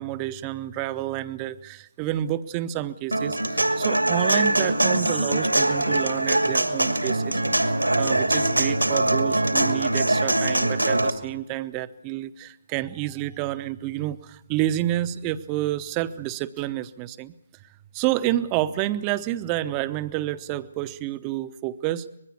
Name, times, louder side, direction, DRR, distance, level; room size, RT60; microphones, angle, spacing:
voice 1, 0.0-7.4 8.0-17.3 17.9-22.1, right 14 dB, 20° right, 14 dB, 0.8 m, -29 dB
Human voice / Acoustic guitar, 3.1-11.1, right 1 dB, 85° right, 2.4 m, -22 dB
25.0 x 21.0 x 7.0 m, 0.85 s
figure-of-eight pair, 140°, 0 cm